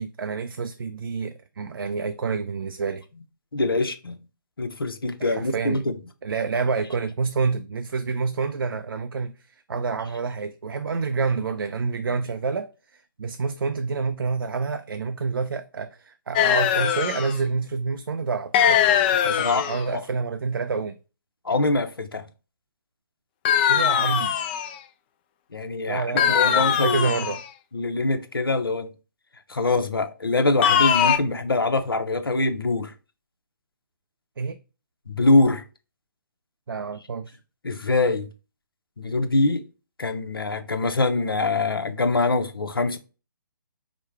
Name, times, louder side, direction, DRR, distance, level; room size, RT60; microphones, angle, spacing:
voice 1, 0.0-3.0 5.2-5.8 6.2-18.8 19.1-20.9 23.7-24.4 25.9-27.4 34.4-34.6 36.7-37.4, right 4 dB, 75° right, 0.4 m, -28 dB
voice 2, 3.5-4.2 4.6-6.0 19.4-19.6 19.9-20.0 21.4-22.2 25.5-27.1 27.7-28.9 29.5-32.9 35.1-35.6 37.6-38.3 39.0-39.6 40.0-43.0, left 2 dB, 85° left, 0.8 m, -24 dB
sound 1, 16.4-17.4 18.5-19.8 23.5-24.8 26.2-27.5 30.6-31.2, left 9 dB, 25° left, 0.4 m, -21 dB
5.0 x 2.2 x 4.4 m
figure-of-eight pair, 140°, 12 cm